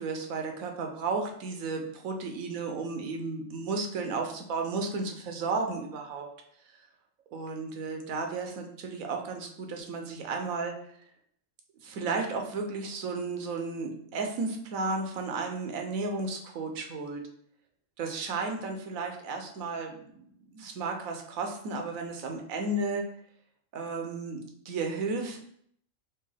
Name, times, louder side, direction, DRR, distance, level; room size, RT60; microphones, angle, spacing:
voice 1, 0.0-6.3 7.3-10.7 11.8-17.2 18.0-20.3 20.5-23.1 23.7-25.5, right 3 dB, 85° right, 3 dB, 1.1 m, -33 dB
4.5 x 3.0 x 3.3 m, 0.66 s
omnidirectional pair, 1.4 m